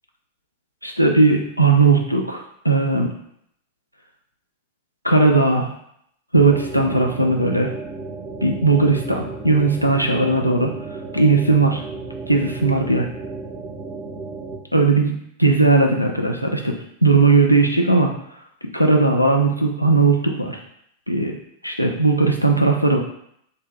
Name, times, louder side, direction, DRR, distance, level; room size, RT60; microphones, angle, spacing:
voice 1, 0.8-3.1 5.0-5.7 6.3-7.7 8.4-10.7 11.1-11.8 12.3-13.1 14.7-15.1 15.4-16.7 17.0-18.1 18.7-20.6 21.1-21.3 21.6-23.0, right 3 dB, 90° left, 2 dB, 0.3 m, -17 dB
sound 1, 6.3-14.6, right 3 dB, 15° right, 0.5 m, -34 dB
2.1 x 2.0 x 3.4 m, 0.72 s
figure-of-eight pair, 90°, 0 cm